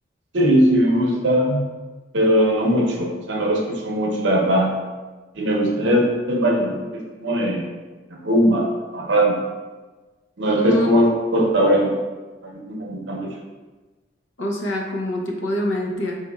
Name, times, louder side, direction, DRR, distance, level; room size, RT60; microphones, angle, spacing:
voice 1, 0.3-1.6 2.1-4.7 5.3-7.7 8.1-8.6 8.9-9.4 10.4-12.0 12.4-13.3, equal, 75° right, -1 dB, 0.7 m, -19 dB
voice 2, 10.5-10.9 14.4-16.2, left 1 dB, 85° left, 0 dB, 0.7 m, -25 dB
4.1 x 3.3 x 2.3 m, 1.3 s
head